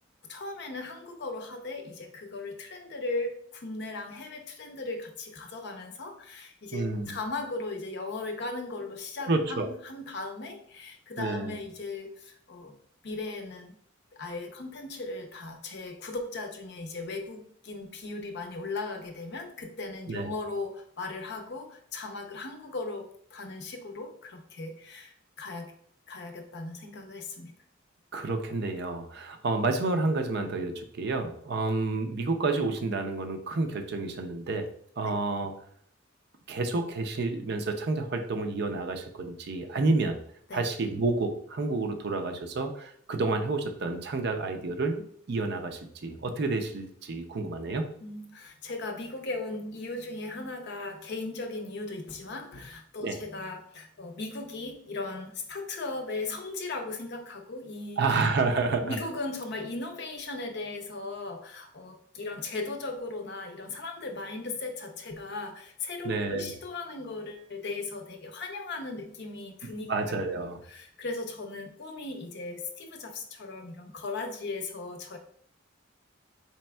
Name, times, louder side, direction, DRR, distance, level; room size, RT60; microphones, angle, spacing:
voice 1, 0.3-12.8 13.0-13.7 14.1-25.7 26.1-27.5 35.0-35.2 40.5-40.6 48.0-58.0 58.8-70.2 70.7-75.2, left 3 dB, 55° left, 5 dB, 0.6 m, -37 dB
voice 2, 6.7-7.2 9.3-9.7 11.2-11.5 20.1-20.3 28.1-34.7 35.0-35.5 36.5-40.2 40.5-47.9 53.0-53.2 58.0-59.0 66.0-66.5 69.9-70.6, right 3 dB, 55° right, 6 dB, 0.4 m, -29 dB
4.2 x 3.3 x 2.2 m, 0.62 s
head